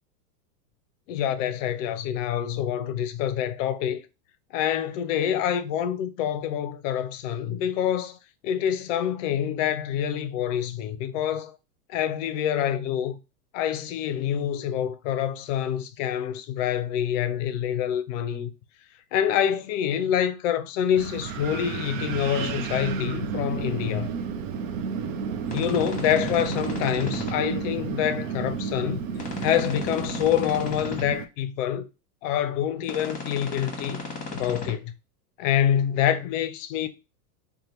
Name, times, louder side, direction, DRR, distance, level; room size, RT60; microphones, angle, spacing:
voice 1, 1.1-4.0 4.5-8.2 8.4-11.5 11.9-13.2 13.5-18.5 19.1-24.1 25.5-29.0 29.4-31.9 32.2-34.0 34.3-34.9 35.4-36.9, left 10 dB, 55° left, 0.6 m, -26 dB
Wind, 21.0-31.2, right 6 dB, 60° right, 0.5 m, -32 dB
sound 1, 25.5-27.3 29.1-31.0 32.8-34.7, left 3 dB, 15° left, 1.0 m, -35 dB
2.8 x 2.2 x 3.1 m
hypercardioid pair, 110°, 47 cm